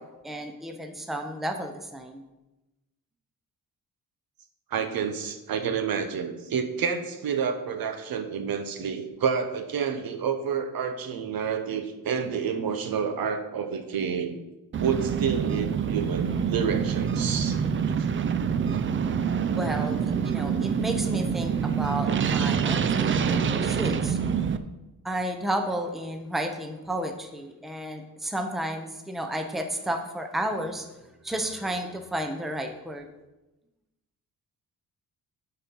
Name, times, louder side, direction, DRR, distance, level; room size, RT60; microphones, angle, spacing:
voice 1, 0.0-2.3 19.6-24.2 25.0-31.0 31.2-33.1, right 1 dB, ahead, 5 dB, 0.7 m, -32 dB
voice 2, 4.7-14.4 14.8-17.6, right 6 dB, 65° right, 7 dB, 0.9 m, -29 dB
sound 1, 14.7-24.6, right 7 dB, 35° right, 0.4 m, -26 dB
8.2 x 4.5 x 5.3 m, 1.0 s
cardioid pair, 115°, 38 cm